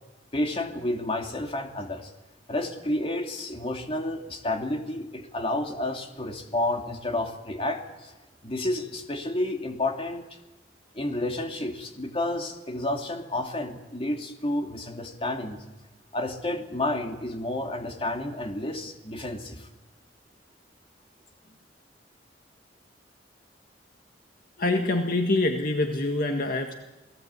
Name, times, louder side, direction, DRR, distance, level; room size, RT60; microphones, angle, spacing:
voice 1, 0.3-2.1 2.5-8.1 8.4-10.3 10.9-15.6 16.1-19.7, left 1 dB, 30° left, 4 dB, 2.7 m, -30 dB
voice 2, 24.6-26.7, left 2 dB, 50° left, 4 dB, 1.8 m, -25 dB
28.5 x 18.5 x 8.3 m, 1.1 s
head